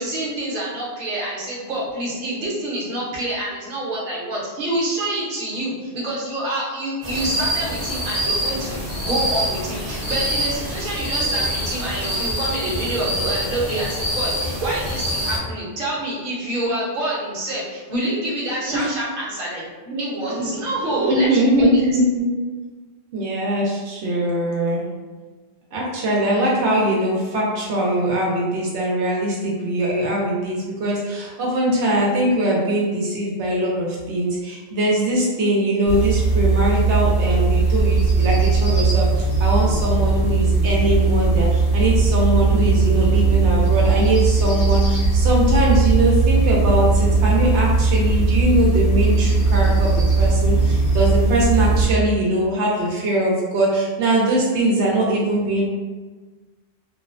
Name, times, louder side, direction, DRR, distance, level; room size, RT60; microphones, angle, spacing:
voice 1, 0.0-21.3 21.9-22.0, right 1 dB, 50° right, -6 dB, 0.9 m, -27 dB
sound 1, 7.0-15.4, equal, 15° right, 0.6 m, -25 dB
voice 2, 20.4-22.3 23.1-24.8 25.7-55.6, right 1 dB, 80° right, -4 dB, 0.9 m, -21 dB
sound 2, 35.9-51.9, right 3 dB, 45° left, 1.1 m, -18 dB
2.8 x 2.0 x 2.4 m, 1.3 s
omnidirectional pair, 1.1 m